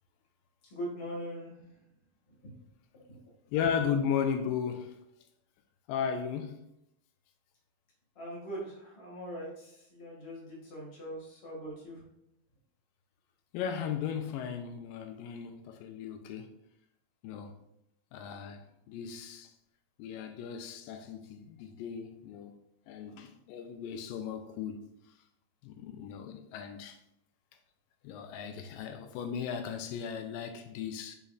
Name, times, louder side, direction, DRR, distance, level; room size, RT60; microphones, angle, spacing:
voice 1, 0.7-1.5 2.4-2.5 2.9-3.2 8.1-12.0, equal, 25° left, 1.7 m, -41 dB
voice 2, 3.5-4.9 5.9-6.6 13.5-16.5 17.2-17.5 18.1-18.6 18.9-19.5 20.0-22.6 22.9-24.9 25.6-27.0 28.0-31.2, left 7 dB, 85° left, 2.3 m, -36 dB
7.0 x 5.6 x 2.5 m
omnidirectional pair, 4.0 m